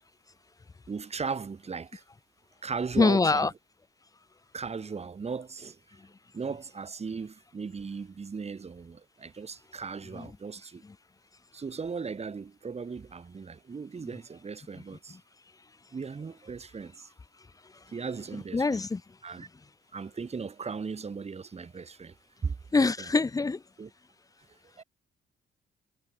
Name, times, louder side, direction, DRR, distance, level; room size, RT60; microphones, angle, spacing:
voice 1, 0.9-2.0 2.6-3.5 4.5-5.8 6.3-10.8 11.5-15.2 15.9-17.1 17.9-18.9 19.2-19.5 19.9-22.2 22.4-22.9 23.8-23.9 24.5-24.8, right 5 dB, 30° right, 2.0 m, -37 dB
voice 2, 3.0-3.5 10.1-10.3 18.5-19.0 22.7-23.6, left 3 dB, 20° left, 0.6 m, -24 dB
cardioid pair, 90°, 20 cm